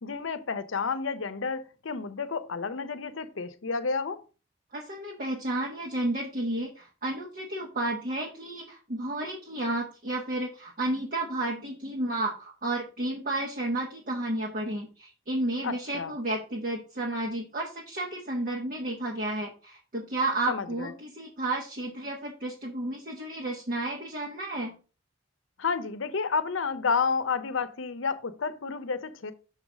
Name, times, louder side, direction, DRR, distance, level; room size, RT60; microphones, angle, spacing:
voice 1, 0.0-4.2 15.6-16.1 20.5-20.9 25.6-29.3, left 5 dB, 70° left, 0.7 m, -30 dB
voice 2, 4.7-24.8, right 1 dB, 45° right, 1.1 m, -32 dB
6.6 x 4.0 x 4.9 m
head